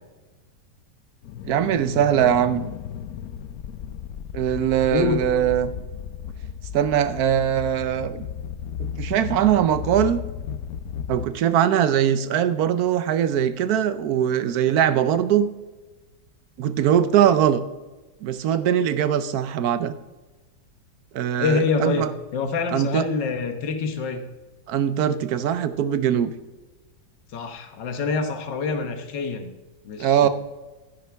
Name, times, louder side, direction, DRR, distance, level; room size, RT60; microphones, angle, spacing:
sound 1, 1.2-11.3, left 8 dB, 70° left, 1.0 m, -34 dB
voice 1, 1.5-2.7 4.3-5.7 6.7-8.2 8.8-10.2 11.1-15.5 16.6-17.6 18.2-19.9 21.1-22.1 22.7-23.0 24.7-26.3 30.0-30.3, right 10 dB, 65° right, 13 dB, 1.1 m, -21 dB
voice 2, 4.9-5.2 21.4-24.2 27.3-29.5 29.8-30.3, left 4 dB, 90° left, 6 dB, 1.8 m, -26 dB
11.5 x 10.5 x 3.4 m, 1.2 s
omnidirectional pair, 1.9 m